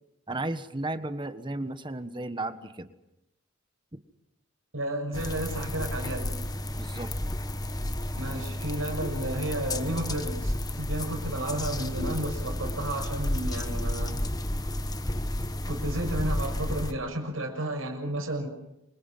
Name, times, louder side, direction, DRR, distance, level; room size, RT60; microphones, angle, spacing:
voice 1, 0.3-2.9 6.8-7.1, right 2 dB, 25° right, 10 dB, 1.4 m, -34 dB
voice 2, 4.7-6.4 8.2-14.1 15.7-18.5, right 1 dB, 85° right, 3 dB, 6.6 m, -32 dB
sound 1, 5.1-16.9, left 1 dB, 20° left, 1.2 m, -32 dB
28.0 x 25.0 x 5.8 m, 0.88 s
head